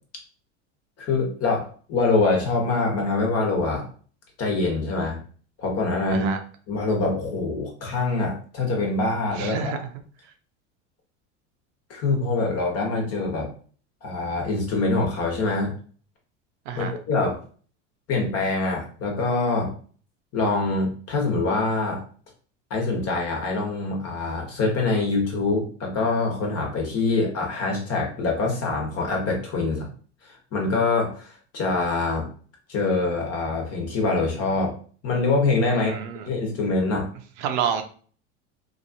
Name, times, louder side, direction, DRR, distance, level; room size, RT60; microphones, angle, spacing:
voice 1, 1.0-3.9 4.4-5.2 5.6-6.3 6.7-9.7 11.9-13.5 14.0-15.7 16.7-17.4 18.1-19.7 20.3-22.0 22.7-29.9 30.5-32.2 32.7-34.7 35.0-36.0 36.3-37.1, left 3 dB, 40° left, 0 dB, 1.2 m, -24 dB
voice 2, 9.3-9.9 16.7-16.9 35.7-36.3 37.4-37.8, right 8 dB, 65° right, 6 dB, 0.6 m, -28 dB
2.8 x 2.5 x 2.7 m, 0.43 s
hypercardioid pair, 95°, 37 cm